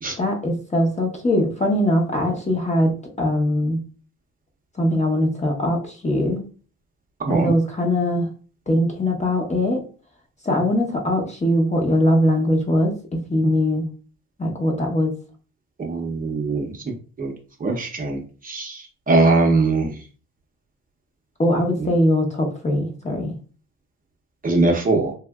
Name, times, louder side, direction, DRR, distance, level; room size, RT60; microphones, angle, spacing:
voice 1, 0.2-2.9 3.2-3.8 4.8-6.4 7.3-8.3 8.7-9.8 10.4-13.9 14.4-15.1 21.4-23.3, left 1 dB, 25° left, 1 dB, 0.9 m, -21 dB
voice 2, 7.2-7.5 15.8-16.8 17.2-17.3 17.6-20.0 24.4-25.1, right 3 dB, 30° right, 0 dB, 0.7 m, -21 dB
3.4 x 2.5 x 2.3 m, 0.39 s
cardioid pair, 90°, 30 cm